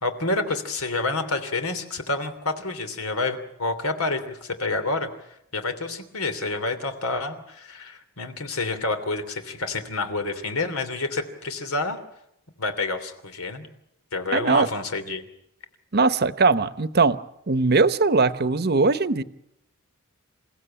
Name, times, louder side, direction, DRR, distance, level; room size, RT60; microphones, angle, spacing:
voice 1, 0.0-12.0 12.6-13.7 14.1-15.2, left 3 dB, 90° left, 8 dB, 3.1 m, -28 dB
voice 2, 14.3-14.7 15.9-17.2 17.5-19.2, right 3 dB, 45° right, 14 dB, 0.9 m, -20 dB
28.5 x 16.0 x 8.9 m, 0.82 s
head